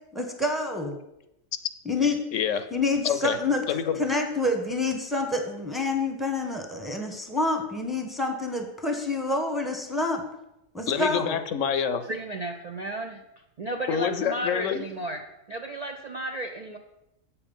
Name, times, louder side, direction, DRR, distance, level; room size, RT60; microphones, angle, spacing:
voice 1, 0.1-1.0 1.8-2.2 2.7-3.6 4.0-10.2 10.7-11.4, left 2 dB, ahead, 4 dB, 1.0 m, -27 dB
voice 2, 2.3-2.7 3.0-3.4 3.7-4.0 10.9-12.0 13.9-14.9, left 8 dB, 75° left, 11 dB, 1.0 m, -27 dB
voice 3, 12.1-13.2 13.6-15.2 15.5-16.8, right 1 dB, 45° right, 3 dB, 0.5 m, -33 dB
8.2 x 7.0 x 5.3 m, 0.87 s
omnidirectional pair, 1.4 m